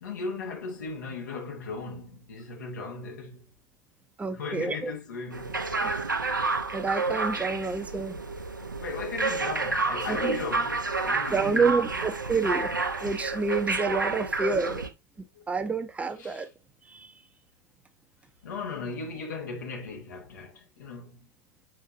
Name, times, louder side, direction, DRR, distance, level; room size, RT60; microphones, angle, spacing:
voice 1, 0.0-3.5 4.3-5.6 8.8-11.9 16.2-16.5 18.4-21.2, left 4 dB, 70° left, 2.2 m, -37 dB
voice 2, 4.2-4.9 5.8-6.1 6.7-8.2 10.1-10.3 11.3-12.7 13.0-14.8 15.5-16.5 16.9-17.1, right 4 dB, 15° right, 0.8 m, -28 dB
sound 1, 5.3-14.9, right 3 dB, 85° right, 0.8 m, -30 dB
6.5 x 5.6 x 2.7 m
figure-of-eight pair, 85°, 10 cm